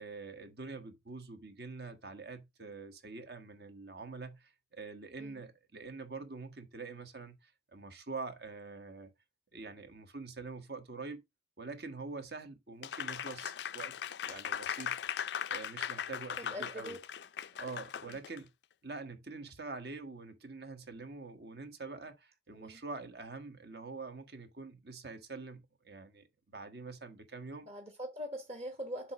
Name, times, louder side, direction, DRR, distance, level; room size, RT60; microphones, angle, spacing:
voice 1, 0.0-9.1 9.5-11.2 11.6-13.9 14.2-15.0 15.5-17.0 17.6-18.5 18.8-27.7, right 3 dB, 65° right, 1.4 m, -45 dB
Applause, 12.8-18.4, left 8 dB, 70° left, 0.4 m, -39 dB
voice 2, 16.4-17.0 18.0-18.2 22.5-22.8 27.7-29.1, equal, 35° right, 1.2 m, -42 dB
7.5 x 3.0 x 5.9 m
head